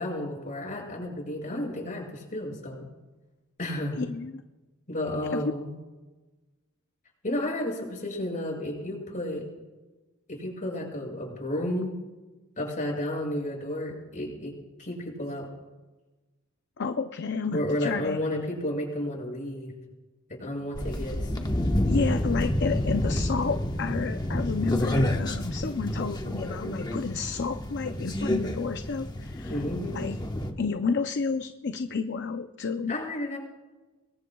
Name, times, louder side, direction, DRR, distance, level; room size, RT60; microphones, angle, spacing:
voice 1, 0.0-2.8 3.6-4.0 4.9-5.7 7.2-9.4 10.3-11.9 12.6-14.5 14.8-15.5 17.5-19.7 20.3-21.3 29.5-30.1 32.9-33.4, left 1 dB, 40° left, -1 dB, 6.7 m, -32 dB
voice 2, 4.0-4.4 5.3-5.5 16.8-18.2 21.9-29.6 29.9-30.2 30.6-33.0, left 4 dB, 55° left, 8 dB, 0.6 m, -30 dB
sound 1, 20.7-30.5, left 1 dB, 20° left, 1.2 m, -29 dB
26.0 x 22.0 x 2.3 m, 1.2 s
head